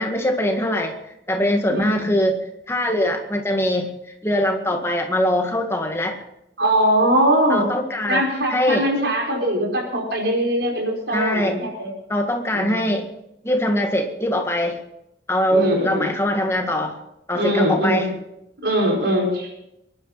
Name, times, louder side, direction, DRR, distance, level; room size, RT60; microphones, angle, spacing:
voice 1, 0.0-2.4 2.7-3.9 4.2-6.2 7.5-8.2 8.5-8.9 11.1-11.6 12.1-13.1 13.4-14.8 15.3-17.0 17.3-18.1, left 1 dB, 15° left, 3 dB, 1.8 m, -22 dB
voice 2, 1.7-2.1 6.6-7.6 8.1-11.9 12.5-12.9 15.5-16.1 17.3-18.1 18.6-19.6, equal, 75° right, 0 dB, 5.0 m, -21 dB
23.5 x 11.5 x 4.1 m, 0.84 s
head